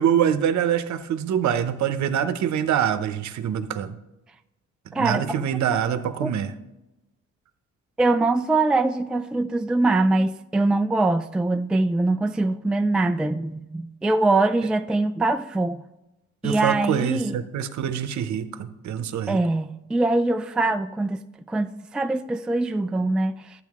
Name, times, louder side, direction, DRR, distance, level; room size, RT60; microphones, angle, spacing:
voice 1, 0.0-4.0 4.9-6.5 16.4-19.4, right 9 dB, 65° right, 0.8 m, -25 dB
voice 2, 4.9-5.4 6.2-6.3 8.0-15.8 16.4-17.4 19.3-21.2 21.5-23.3, right 2 dB, 5° right, 0.3 m, -23 dB
12.0 x 8.4 x 3.6 m
cardioid pair, 90°, 30 cm